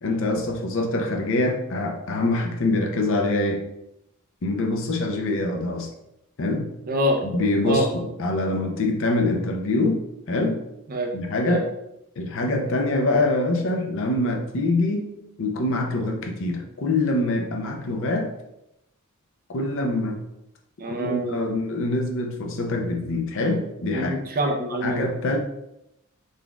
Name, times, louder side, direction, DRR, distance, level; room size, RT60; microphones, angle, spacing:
voice 1, 0.0-3.6 4.4-5.9 6.4-6.7 7.2-10.0 10.3-10.6 11.1-11.7 12.2-18.3 19.5-20.2 20.9-24.1 24.8-25.4, left 2 dB, 65° left, 3 dB, 0.6 m, -24 dB
voice 2, 6.9-7.2 7.7-7.9 10.9-11.1 11.5-11.6 20.8-21.7 23.9-25.1, equal, 45° right, 2 dB, 0.6 m, -25 dB
3.9 x 3.4 x 2.3 m, 0.84 s
head